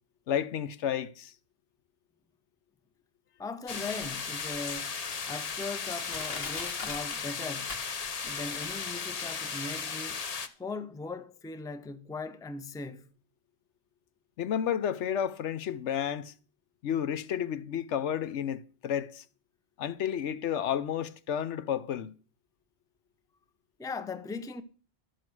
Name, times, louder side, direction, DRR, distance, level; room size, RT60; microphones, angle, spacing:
voice 1, 0.3-1.3 14.4-16.3 16.8-19.2 19.8-22.1, left 9 dB, 90° left, 1.0 m, -31 dB
voice 2, 3.4-7.9 8.2-10.2 10.6-13.1 23.8-24.6, left 3 dB, 5° left, 0.4 m, -39 dB
sound 1, 3.7-10.5, left 5 dB, 40° left, 0.7 m, -36 dB
Crushing, 4.0-4.1 4.8-4.9 5.5-5.6 6.1-8.3 8.6-8.7, left 4 dB, 60° left, 1.6 m, -40 dB
12.5 x 6.5 x 6.1 m
omnidirectional pair, 1.2 m